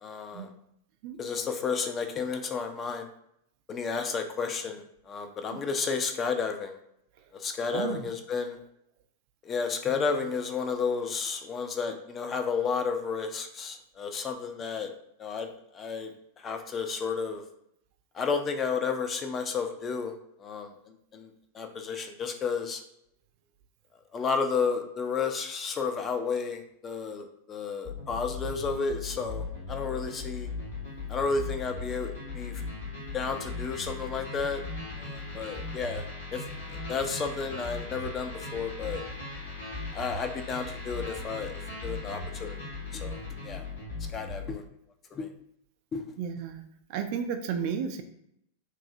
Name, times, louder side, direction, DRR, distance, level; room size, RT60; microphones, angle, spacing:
voice 1, 0.0-0.5 1.2-3.1 3.7-6.7 7.3-8.6 9.4-14.9 15.2-15.5 15.7-16.1 16.4-17.4 18.1-20.1 20.4-20.7 21.1-21.3 21.5-22.8 24.1-30.5 31.1-32.6 33.1-34.6 35.0-36.1 36.3-39.0 39.9-41.5 41.8-42.6 42.9-43.7 44.1-44.6 45.1-45.3 45.9-46.0, left 5 dB, 25° left, 5 dB, 0.4 m, -32 dB
voice 2, 7.7-8.1 35.3-35.5 46.2-46.6 46.9-48.0, right 7 dB, 45° right, 6 dB, 0.4 m, -33 dB
sound 1, 27.8-44.6, left 3 dB, 70° left, 1.5 m, -38 dB
3.1 x 2.6 x 2.7 m, 0.75 s
figure-of-eight pair, 90°, 0 cm